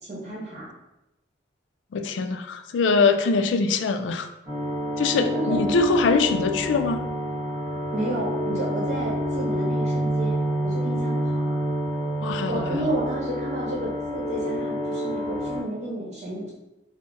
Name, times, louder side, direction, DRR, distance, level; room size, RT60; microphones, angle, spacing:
voice 1, 0.1-0.7 5.1-5.4 7.9-11.6 12.5-16.5, right 1 dB, 40° right, -5 dB, 1.0 m, -31 dB
voice 2, 1.9-4.3 5.0-7.1 12.2-12.9, left 4 dB, 80° left, 7 dB, 0.3 m, -23 dB
sound 1, 4.5-15.6, equal, 20° right, 1.4 m, -28 dB
3.6 x 2.0 x 3.8 m, 0.93 s
head